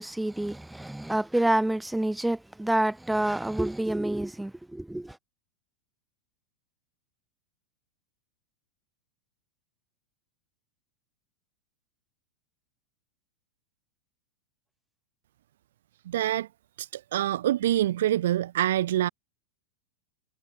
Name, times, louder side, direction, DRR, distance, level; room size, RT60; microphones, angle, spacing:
voice 1, 0.0-5.2, right 1 dB, 5° right, 6.8 m, -28 dB
voice 2, 16.1-16.5 16.8-19.1, right 13 dB, 60° right, 1.1 m, -26 dB
figure-of-eight pair, 90°, 0 cm